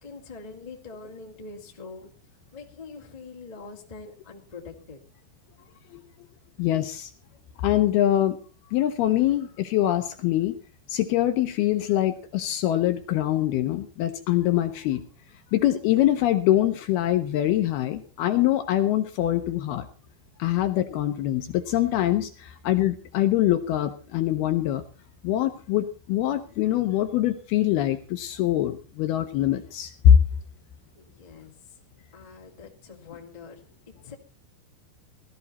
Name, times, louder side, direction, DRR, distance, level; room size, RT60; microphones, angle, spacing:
voice 1, 0.0-2.1 2.5-5.0 30.9-31.5 32.1-34.1, left 4 dB, 20° left, 1 dB, 1.0 m, -44 dB
voice 2, 6.6-7.1 7.6-8.4 8.7-10.6 10.9-15.0 15.5-19.9 20.4-24.8 25.2-30.2, left 12 dB, 75° left, 8 dB, 2.5 m, -23 dB
18.0 x 13.5 x 4.1 m, 0.36 s
omnidirectional pair, 5.1 m